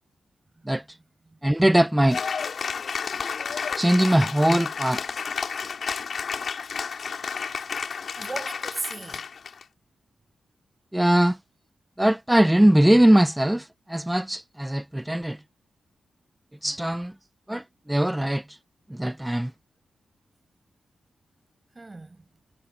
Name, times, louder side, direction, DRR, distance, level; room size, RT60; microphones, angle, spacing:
voice 1, 0.7-1.0 1.4-2.2 3.8-5.0 10.9-11.4 12.0-15.4 16.6-17.1 17.5-18.6 18.9-19.5, right 1 dB, 10° right, 1.0 m, -21 dB
Cheering / Applause, 2.1-9.6, left 6 dB, 65° left, 5.2 m, -31 dB
voice 2, 8.2-9.3 21.7-22.3, right 2 dB, 30° right, 6.4 m, -37 dB
cardioid pair, 55°, 0 cm